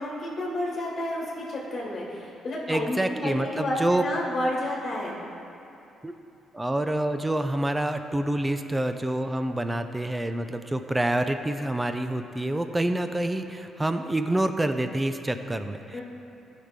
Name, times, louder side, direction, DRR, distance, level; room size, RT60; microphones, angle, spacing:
voice 1, 0.0-5.3 15.9-16.0, left 1 dB, 40° left, -5 dB, 2.3 m, -30 dB
voice 2, 2.7-4.1 6.0-6.1 6.5-16.0, right 1 dB, 15° right, 8 dB, 0.5 m, -27 dB
15.0 x 5.8 x 3.7 m, 2.8 s
cardioid pair, 90°, 0 cm